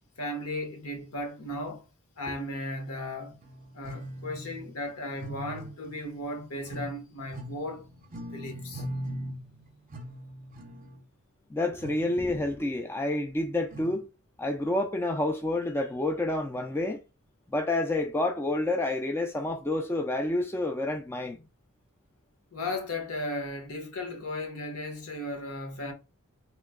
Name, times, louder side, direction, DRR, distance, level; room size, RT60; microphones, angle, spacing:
voice 1, 0.2-1.8 2.2-3.4 3.7-7.9 8.3-8.8 22.5-25.9, left 1 dB, 70° left, 0.9 m, -36 dB
sound 1, 3.3-4.7 5.2-7.0 7.3-11.0 11.8-12.5 13.7-14.0, equal, 40° right, 0.6 m, -41 dB
voice 2, 11.5-14.1 14.4-17.0 17.5-21.4, left 2 dB, 10° left, 0.3 m, -29 dB
2.9 x 2.1 x 3.5 m
head